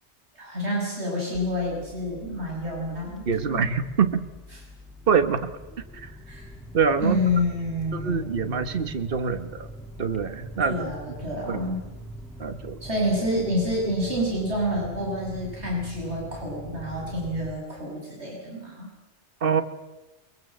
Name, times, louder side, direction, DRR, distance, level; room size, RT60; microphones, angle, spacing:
voice 1, 0.3-3.7 6.3-6.5 7.0-9.0 10.6-11.9 12.8-18.9, left 1 dB, 65° right, -2 dB, 7.1 m, -28 dB
sound 1, 1.3-17.5, equal, ahead, 3.5 m, -43 dB
voice 2, 3.3-4.3 5.1-5.5 6.7-7.2 7.9-9.7 10.0-10.8 11.5-11.7 12.4-12.8 19.4-19.6, right 6 dB, 50° right, 10 dB, 1.5 m, -24 dB
23.5 x 22.0 x 7.9 m, 1.1 s
omnidirectional pair, 1.2 m